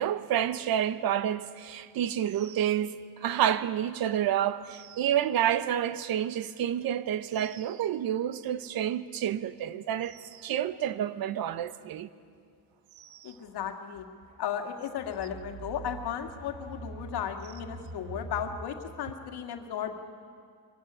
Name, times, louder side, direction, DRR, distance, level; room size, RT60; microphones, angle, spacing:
voice 1, 0.0-12.1 13.0-13.3, right 10 dB, 60° right, 0.9 m, -29 dB
sound 1, 9.3-9.4 10.1-10.4 11.4-11.6 13.4-13.7 14.2-18.7, right 4 dB, 80° right, 2.0 m, -45 dB
voice 2, 13.2-14.1 14.4-19.9, left 9 dB, 70° left, 2.0 m, -35 dB
23.0 x 15.0 x 9.7 m
cardioid pair, 145°, 41 cm